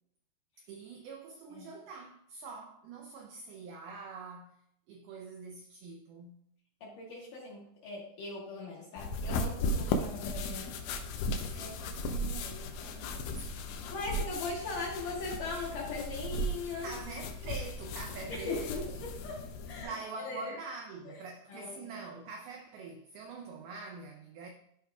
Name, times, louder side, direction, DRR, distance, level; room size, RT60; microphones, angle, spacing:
voice 1, 0.6-4.6 4.9-6.4 11.5-13.8 16.8-19.1 19.8-24.5, right 4 dB, 85° right, 2.1 m, -45 dB
voice 2, 6.8-10.8 11.5-11.6 13.9-16.9 18.3-19.4 19.7-19.9 20.2-20.5 21.5-21.8, left 3 dB, 60° left, 2.3 m, -39 dB
sound 1, 9.0-19.8, left 1 dB, 80° left, 2.8 m, -36 dB
13.0 x 4.7 x 2.3 m
omnidirectional pair, 5.3 m